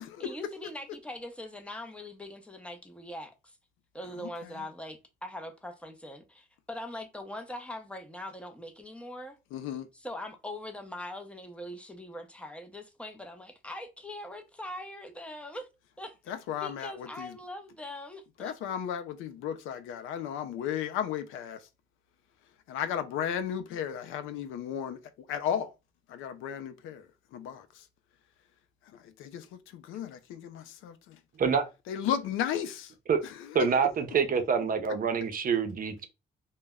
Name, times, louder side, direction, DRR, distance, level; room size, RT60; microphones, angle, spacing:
voice 1, 0.2-3.6 3.9-9.4 9.9-15.7 16.0-16.3 16.6-18.5, left 1 dB, 5° left, 0.5 m, -42 dB
voice 2, 9.5-9.9 16.3-17.3 18.4-21.6 22.7-25.0 25.3-25.7 26.1-27.0 27.3-27.7 29.2-29.5 29.7-31.2 31.9-32.9 33.6-33.8, left 9 dB, 90° left, 0.4 m, -34 dB
voice 3, 33.5-36.1, right 6 dB, 45° right, 0.5 m, -26 dB
2.1 x 2.0 x 3.4 m
cardioid pair, 90°, 20 cm